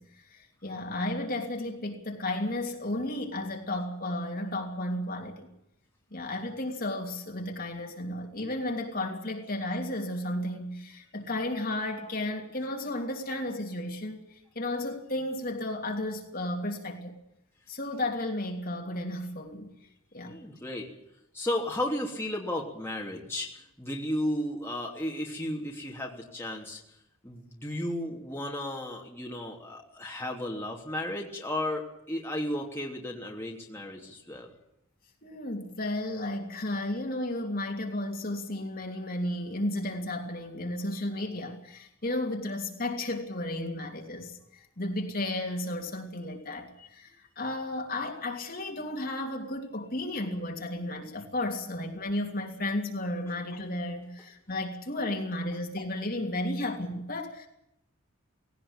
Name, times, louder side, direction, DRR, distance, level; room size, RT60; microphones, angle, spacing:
voice 1, 0.0-5.5 6.1-17.1 17.7-19.7 20.1-20.3 35.2-57.5, left 1 dB, 40° left, 2 dB, 3.0 m, -33 dB
voice 2, 20.3-20.9 21.3-26.8 27.2-34.5, left 1 dB, 10° left, -1 dB, 3.2 m, -34 dB
18.5 x 18.0 x 8.9 m, 0.79 s
head